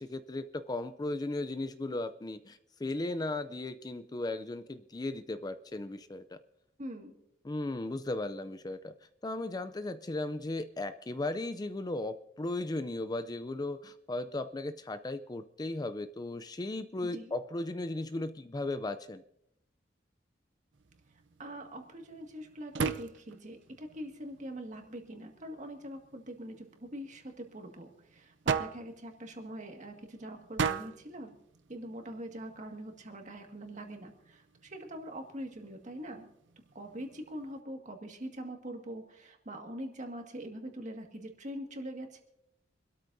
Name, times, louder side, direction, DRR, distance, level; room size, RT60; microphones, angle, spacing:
voice 1, 0.0-6.4 7.4-8.9 9.2-19.2, left 2 dB, 20° left, 11 dB, 0.4 m, -36 dB
voice 2, 6.8-7.2 17.0-17.3 21.4-31.4 31.7-36.3 36.7-42.2, right 1 dB, 40° right, 3 dB, 1.9 m, -43 dB
sound 1, 20.7-37.6, right 5 dB, 70° right, 0.6 m, -41 dB
26.0 x 13.0 x 2.7 m, 0.78 s
head